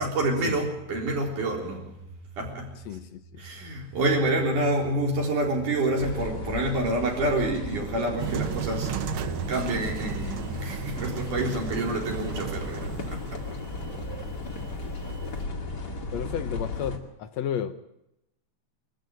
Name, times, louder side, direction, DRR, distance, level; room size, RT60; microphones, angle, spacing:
voice 1, 0.0-1.9 2.4-2.7 3.4-8.9 9.5-13.2, right 2 dB, 65° right, 0 dB, 5.5 m, -27 dB
voice 2, 2.9-3.4 16.1-17.7, left 9 dB, 70° left, 10 dB, 1.8 m, -32 dB
sound 1, 6.0-17.0, left 3 dB, 35° left, 2.6 m, -35 dB
sound 2, 8.2-15.4, right 10 dB, 85° right, 1.2 m, -36 dB
24.0 x 14.5 x 9.1 m, 0.85 s
omnidirectional pair, 3.8 m